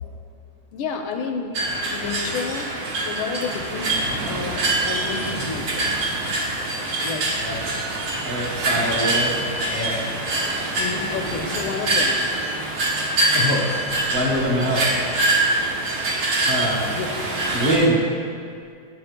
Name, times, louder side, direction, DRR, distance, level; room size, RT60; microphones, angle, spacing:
voice 1, 0.7-1.6 1.9-2.7 3.0-5.9 7.0-7.3 10.8-12.2 16.9-17.1, left 5 dB, 85° left, 4 dB, 1.5 m, -30 dB
sound 1, 1.5-17.8, right 2 dB, 80° right, 2.0 m, -24 dB
voice 2, 8.2-9.3 9.7-10.0 13.3-13.7 14.1-14.8 16.4-16.8 17.5-18.0, equal, 40° right, -3 dB, 1.1 m, -23 dB
13.5 x 7.5 x 2.2 m, 2.3 s
omnidirectional pair, 2.2 m